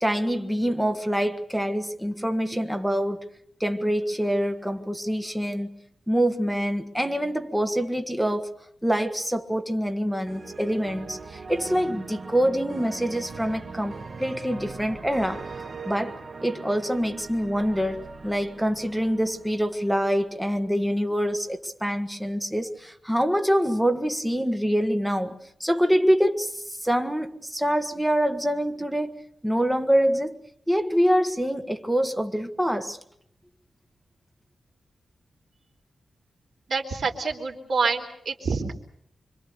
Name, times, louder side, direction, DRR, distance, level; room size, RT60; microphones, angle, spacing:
voice 1, 0.0-3.2 3.6-5.8 6.1-8.5 8.8-15.5 15.8-30.4 30.7-33.0, equal, 5° right, 1.5 m, -25 dB
sound 1, 10.3-20.3, right 4 dB, 40° right, 1.3 m, -40 dB
voice 2, 36.7-38.7, right 4 dB, 65° right, 3.8 m, -27 dB
26.5 x 24.5 x 6.8 m
wide cardioid pair, 150°, 0 cm